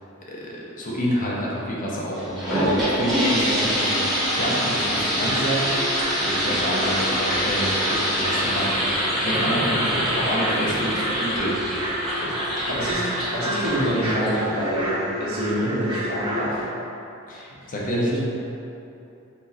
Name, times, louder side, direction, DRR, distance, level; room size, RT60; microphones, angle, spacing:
voice 1, 0.3-5.7 6.1-11.6 17.3-18.2, equal, 40° left, -5 dB, 0.7 m, -28 dB
sound 1, 2.1-14.7, equal, ahead, 1.2 m, -25 dB
sound 2, 5.3-16.7, equal, 20° right, 0.5 m, -30 dB
voice 2, 12.8-16.6 17.9-18.2, right 1 dB, 85° right, -7 dB, 1.2 m, -26 dB
4.5 x 2.7 x 4.2 m, 2.9 s
head